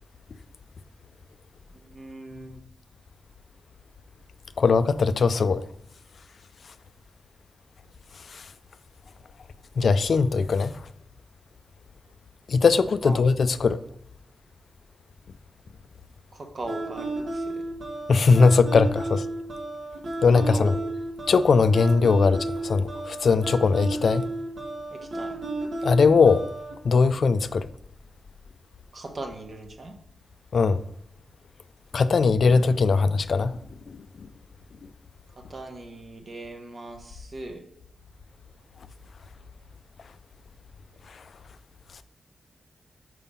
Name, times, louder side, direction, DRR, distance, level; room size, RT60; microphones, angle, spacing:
voice 1, 1.9-2.6 13.0-13.2 16.3-17.6 20.3-20.8 24.9-25.4 28.9-29.9 35.5-37.6, right 2 dB, 45° right, 1.1 m, -39 dB
voice 2, 4.6-5.6 8.3-8.4 9.8-10.7 12.5-13.8 18.1-19.2 20.2-20.7 21.3-24.2 25.8-26.4 26.8-27.7 30.5-30.8 31.9-33.6 33.9-34.0, left 4 dB, 65° left, 0.3 m, -20 dB
sound 1, 16.7-26.7, right 2 dB, 75° right, 1.4 m, -33 dB
5.5 x 5.0 x 5.5 m
wide cardioid pair, 110°, 0 cm